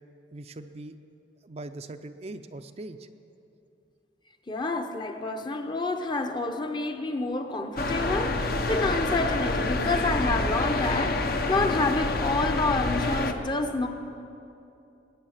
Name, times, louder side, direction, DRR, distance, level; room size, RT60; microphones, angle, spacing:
voice 1, 0.3-0.9 1.4-3.1, right 2 dB, 35° right, 7 dB, 0.5 m, -41 dB
voice 2, 4.5-13.9, left 3 dB, 25° left, 6 dB, 0.8 m, -28 dB
sound 1, 7.8-13.3, left 2 dB, 55° left, 0.9 m, -27 dB
20.0 x 9.1 x 7.3 m, 2.7 s
head